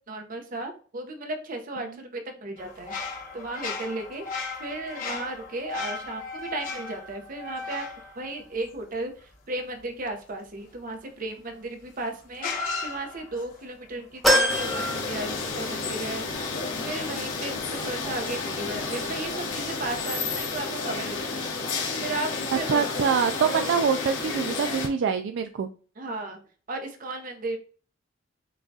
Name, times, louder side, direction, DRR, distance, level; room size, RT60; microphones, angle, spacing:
voice 1, 0.1-3.0 3.3-4.3 4.6-7.8 8.2-9.1 9.5-12.5 12.8-16.2 16.8-21.5 22.0-22.9 26.0-26.4 26.7-27.6, right 2 dB, 45° right, 4 dB, 0.8 m, -35 dB
sound 1, 2.6-9.2 11.5-11.6 12.4-13.6 14.2-15.3, left 4 dB, 45° left, 1.1 m, -36 dB
sound 2, 14.2-15.9 16.3-16.4 17.6-17.7, equal, ahead, 0.8 m, -25 dB
sound 3, 14.5-24.9, left 4 dB, 75° left, 1.5 m, -31 dB
voice 2, 22.7-25.7, right 6 dB, 65° right, 7 dB, 0.3 m, -25 dB
7.0 x 2.3 x 2.7 m, 0.40 s
head